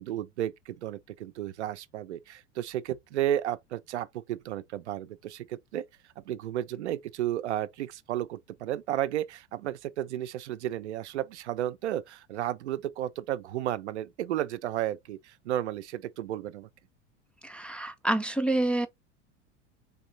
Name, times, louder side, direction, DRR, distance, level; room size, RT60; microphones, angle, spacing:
voice 1, 0.0-5.9 6.2-16.7, right 12 dB, 70° right, 0.6 m, -33 dB
voice 2, 17.4-18.9, right 1 dB, 5° left, 0.4 m, -28 dB
4.1 x 3.2 x 3.9 m
figure-of-eight pair, 80°, 36 cm